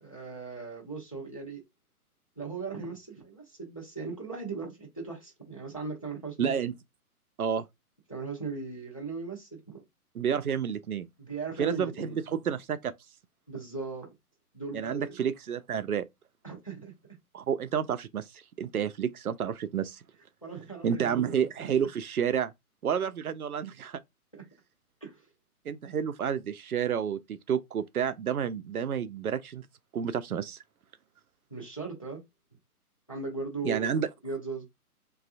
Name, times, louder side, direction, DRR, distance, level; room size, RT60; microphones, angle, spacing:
voice 1, 0.0-1.6 2.4-6.5 8.1-9.8 11.2-12.2 13.5-14.1 14.5-15.2 16.4-16.9 20.4-21.7 24.3-24.4 25.0-25.3 31.5-32.2 33.1-33.9 34.2-34.7, right 4 dB, 25° left, 0.4 m, -38 dB
voice 2, 6.4-6.7 7.4-7.6 10.1-11.1 11.6-12.9 14.7-16.0 17.3-20.0 20.8-22.5 22.8-24.0 25.7-29.6 29.9-30.6 33.6-34.1, right 8 dB, 75° right, 0.5 m, -30 dB
3.1 x 2.3 x 2.6 m
figure-of-eight pair, 135°, 45 cm